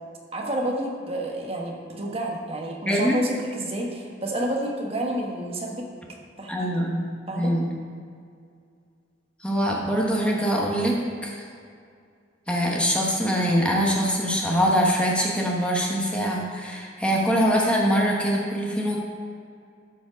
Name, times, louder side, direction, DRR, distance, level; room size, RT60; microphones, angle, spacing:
voice 1, 0.3-5.9 6.4-6.7 7.3-7.5, right 1 dB, 30° right, -1 dB, 1.4 m, -30 dB
voice 2, 6.5-7.6 9.4-11.3 12.5-19.0, equal, 5° left, -2 dB, 1.2 m, -23 dB
13.0 x 5.1 x 5.2 m, 2.3 s
head